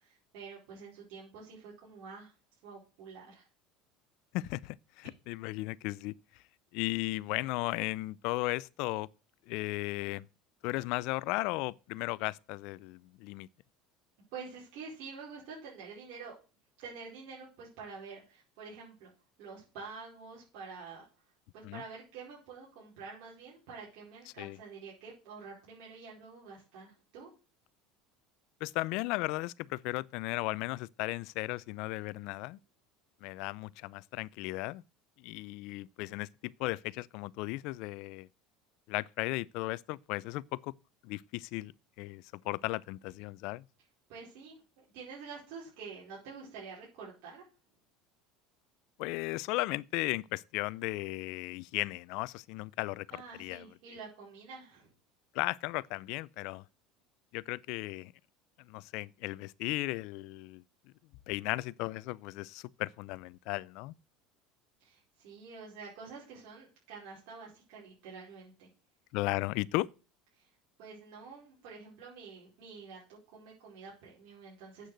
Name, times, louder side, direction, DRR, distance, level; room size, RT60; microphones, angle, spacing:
voice 1, 0.0-2.3 2.6-3.5 14.3-16.3 16.8-19.1 19.4-21.0 21.5-27.3 44.1-47.4 53.1-54.9 64.8-68.7 70.3-70.5 70.8-74.9, right 5 dB, 70° right, 4.7 m, -48 dB
voice 2, 4.3-6.1 6.7-9.1 9.5-10.3 10.6-13.5 21.6-21.8 24.4-24.6 28.6-32.6 33.2-34.8 35.2-38.3 38.9-40.7 41.0-41.7 42.0-43.6 49.0-53.7 55.3-56.6 57.3-58.1 58.6-60.6 61.3-63.9 69.1-69.9, left 21 dB, 65° left, 0.4 m, -36 dB
8.3 x 6.4 x 7.9 m
supercardioid pair, 115°, 0 cm